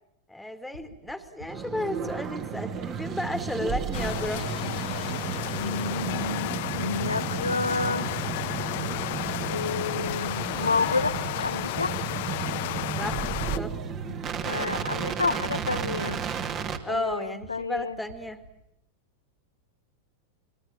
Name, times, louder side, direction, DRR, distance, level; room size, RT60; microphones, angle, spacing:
voice 1, 0.3-4.5 10.5-10.8 13.0-13.8 16.8-18.4, left 1 dB, 5° left, 11 dB, 2.2 m, -33 dB
sound 1, 0.7-18.6, equal, 85° right, 4.0 m, -48 dB
sound 2, 1.5-16.8, right 7 dB, 35° right, 2.3 m, -33 dB
sound 3, 3.9-13.6, left 16 dB, 50° left, 1.0 m, -33 dB
voice 2, 5.6-8.1 9.5-12.0 14.4-16.2 16.9-18.0, left 4 dB, 80° left, 14 dB, 1.2 m, -30 dB
25.0 x 23.5 x 8.7 m, 0.78 s
figure-of-eight pair, 90°, 0 cm